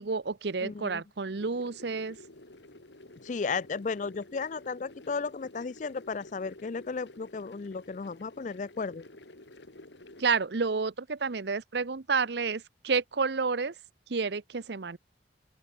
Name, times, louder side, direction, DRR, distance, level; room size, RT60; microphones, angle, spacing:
voice 1, 0.0-2.2 10.2-13.7 14.1-15.0, right 4 dB, 65° right, 0.7 m, -30 dB
voice 2, 0.6-1.0 3.2-9.0, left 4 dB, 40° left, 0.4 m, -34 dB
sound 1, 1.4-10.2, left 1 dB, 75° left, 3.0 m, -51 dB
open air
head